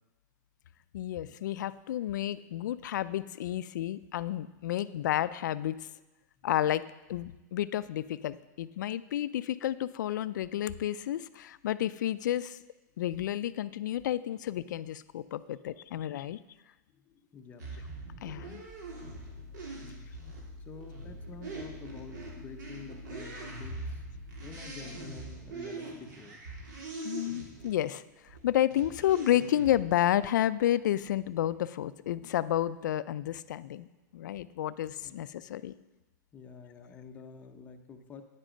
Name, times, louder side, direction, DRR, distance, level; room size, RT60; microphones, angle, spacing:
voice 1, 0.9-5.9 6.4-6.8 7.1-12.6 13.0-16.4 18.2-18.6 27.0-33.9 34.1-35.7, left 12 dB, 75° left, 15 dB, 0.4 m, -31 dB
voice 2, 16.9-17.7 20.7-24.0 24.4-26.4 35.0-35.2 36.3-38.2, left 5 dB, 15° left, 6 dB, 0.6 m, -48 dB
sound 1, 17.6-27.8 28.3-29.8, right 3 dB, 75° right, 3.0 m, -43 dB
sound 2, 18.7-24.9, left 2 dB, 35° right, 3.5 m, -48 dB
9.6 x 7.6 x 5.0 m, 1.1 s
supercardioid pair, 150°, 10 cm